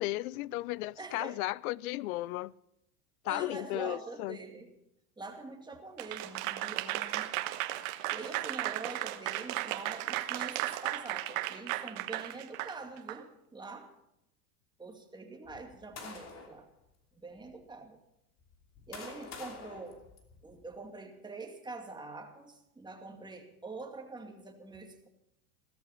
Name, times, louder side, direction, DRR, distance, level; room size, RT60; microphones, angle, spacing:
voice 1, 0.0-2.5 3.2-4.4, left 18 dB, 70° left, 0.6 m, -35 dB
voice 2, 1.0-1.4 3.2-4.7 5.2-7.3 8.1-13.9 14.8-16.7 17.2-18.0 18.9-20.0 20.4-25.1, right 3 dB, 10° right, 2.3 m, -45 dB
Applause / Crowd, 6.0-13.2, right 16 dB, 60° right, 1.2 m, -35 dB
sound 1, 15.5-16.6 17.4-17.5 18.4-20.7, left 4 dB, 35° left, 3.0 m, -48 dB
17.0 x 13.5 x 5.8 m
supercardioid pair, 130°, 44 cm